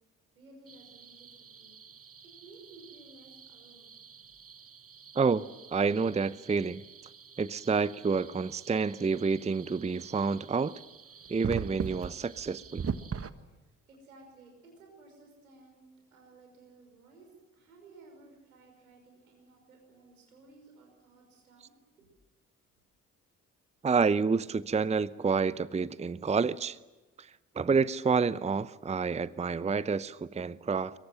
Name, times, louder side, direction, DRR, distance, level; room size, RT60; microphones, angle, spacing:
voice 1, 0.3-1.8 2.2-4.0 4.2-4.3 13.4-22.1, right 3 dB, 85° right, 2 dB, 5.8 m, -56 dB
sound 1, 0.7-13.3, right 6 dB, 35° right, 1.5 m, -43 dB
voice 2, 5.7-6.8 7.4-10.8 11.3-12.8 23.8-26.8 27.2-27.3 27.6-31.0, right 5 dB, 15° right, 18 dB, 0.7 m, -28 dB
24.0 x 23.0 x 7.9 m, 1.2 s
figure-of-eight pair, 45°, 42 cm